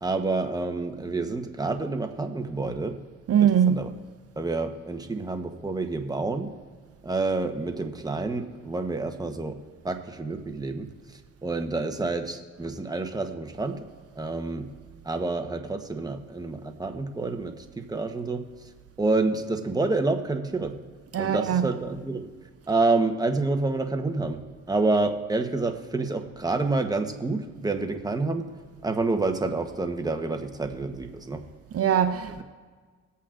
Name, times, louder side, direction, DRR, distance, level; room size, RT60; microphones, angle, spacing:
voice 1, 0.0-3.0 3.4-3.9 4.4-6.5 7.0-9.5 9.8-10.9 11.4-13.8 14.2-14.7 15.0-18.4 19.0-20.7 21.2-22.3 22.7-24.4 24.7-28.5 28.8-31.4, right 3 dB, 15° right, 1.0 m, -28 dB
voice 2, 3.3-3.8 21.1-21.6 31.7-32.4, right 9 dB, 50° right, 0.6 m, -21 dB
20.5 x 8.4 x 2.5 m
cardioid pair, 90°, 30 cm